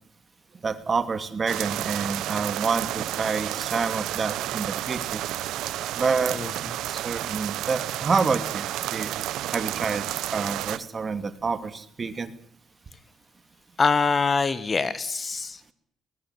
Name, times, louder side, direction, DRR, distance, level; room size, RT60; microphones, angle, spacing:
voice 1, 0.6-5.2 6.0-6.4 6.9-8.6 8.9-9.1 9.5-10.0 10.3-12.3, right 5 dB, 40° right, 11 dB, 2.6 m, -28 dB
sound 1, 1.5-10.8, right 13 dB, 85° right, 1.0 m, -31 dB
voice 2, 13.8-15.7, left 4 dB, 35° left, 14 dB, 1.8 m, -24 dB
20.5 x 20.0 x 8.2 m, 0.63 s
cardioid pair, 90°, 0 cm